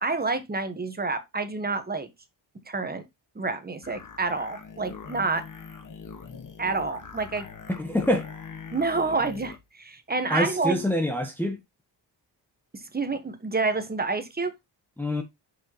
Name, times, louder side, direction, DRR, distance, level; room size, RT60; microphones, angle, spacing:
voice 1, 0.0-2.1 2.7-3.0 3.3-5.4 6.6-7.5 8.7-10.8 12.7-14.5, right 3 dB, 20° right, 1.1 m, -28 dB
sound 1, 3.8-9.6, left 5 dB, 45° left, 1.4 m, -42 dB
voice 2, 7.7-8.2 10.3-11.6 15.0-15.2, left 1 dB, 5° left, 1.0 m, -25 dB
5.8 x 5.5 x 2.9 m
cardioid pair, 110°, 44 cm